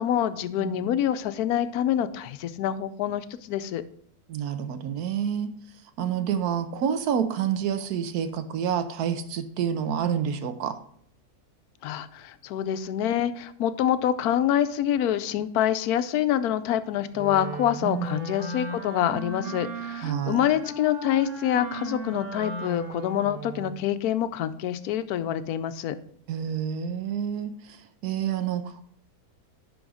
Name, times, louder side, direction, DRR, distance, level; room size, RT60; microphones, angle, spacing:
voice 1, 0.0-3.8 11.8-26.0, left 10 dB, 75° left, 13 dB, 1.1 m, -26 dB
voice 2, 4.3-5.5 6.0-10.7 17.8-18.2 20.0-20.4 26.3-28.8, right 8 dB, 80° right, 10 dB, 1.2 m, -28 dB
Wind instrument woodwind instrument, 17.1-23.8, right 1 dB, 55° right, 1.7 m, -36 dB
10.5 x 3.9 x 4.8 m, 0.62 s
omnidirectional pair, 1.6 m